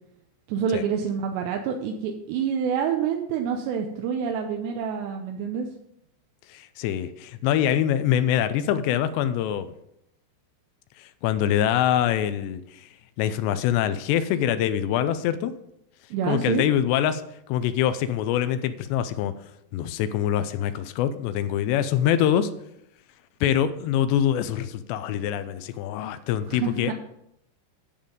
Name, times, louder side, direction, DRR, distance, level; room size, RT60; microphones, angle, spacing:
voice 1, 0.5-5.7 16.1-16.7 26.5-26.9, right 7 dB, 80° right, 3 dB, 2.9 m, -27 dB
voice 2, 6.5-9.7 11.0-12.9 13.2-15.6 16.3-17.2 17.5-19.3 19.7-22.5 23.4-26.9, left 10 dB, 85° left, 12 dB, 2.7 m, -24 dB
10.5 x 7.3 x 5.1 m, 0.79 s
omnidirectional pair, 5.0 m